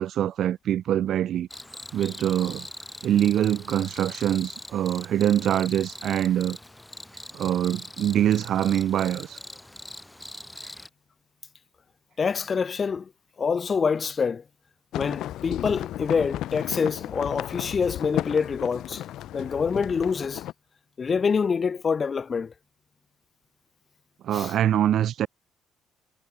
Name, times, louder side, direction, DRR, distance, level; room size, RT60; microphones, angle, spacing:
voice 1, 0.0-1.5 1.9-2.7 3.0-6.6 7.3-9.4 24.2-25.3, right 11 dB, 70° right, 1.4 m, -24 dB
Cricket, 1.5-10.9, left 1 dB, 10° left, 2.0 m, -42 dB
voice 2, 12.2-13.1 13.4-14.4 14.9-19.0 19.3-20.4 21.0-22.5 24.3-24.5, left 5 dB, 40° left, 0.6 m, -26 dB
sound 1, 14.9-20.5, left 13 dB, 75° left, 3.6 m, -34 dB
supercardioid pair, 70°, 0 cm